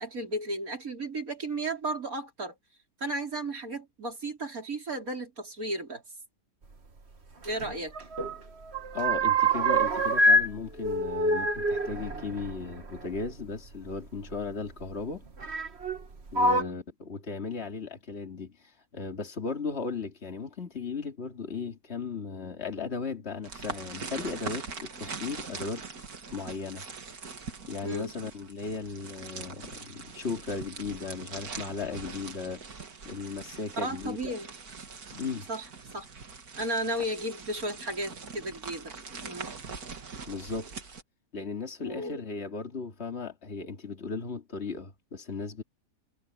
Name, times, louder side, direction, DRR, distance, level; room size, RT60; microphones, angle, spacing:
voice 1, 0.0-2.5 3.0-6.0 7.4-7.9 16.5-16.8 27.8-28.1 33.8-34.5 35.5-35.7 35.9-36.1 36.6-38.9 39.2-39.5 41.8-42.2, right 1 dB, 70° right, 5.0 m, -34 dB
sound 1, 7.4-8.4 8.6-10.5 10.8-13.3 14.3-14.4 15.4-16.0 16.3-16.6, right 1 dB, 45° right, 1.9 m, -25 dB
voice 2, 8.9-15.2 16.3-18.5 18.9-25.8 26.3-26.8 27.7-32.6 33.1-34.3 35.1-35.5 40.3-40.7 41.3-45.6, left 4 dB, 45° left, 2.8 m, -36 dB
sound 2, 23.4-41.0, right 5 dB, 90° right, 2.5 m, -42 dB
omnidirectional pair, 1.5 m